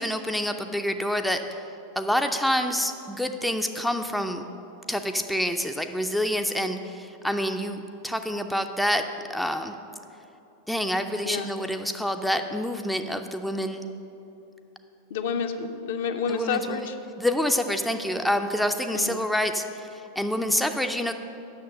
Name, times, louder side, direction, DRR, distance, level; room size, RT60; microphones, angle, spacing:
voice 1, 0.0-1.6 2.0-4.5 4.9-9.0 9.3-9.7 10.7-13.9 16.3-16.9 17.2-21.1, equal, ahead, 6 dB, 0.4 m, -27 dB
voice 2, 15.1-17.0 18.9-19.2, left 6 dB, 55° left, 6 dB, 0.6 m, -29 dB
7.9 x 6.6 x 6.6 m, 2.8 s
figure-of-eight pair, 90°, 0 cm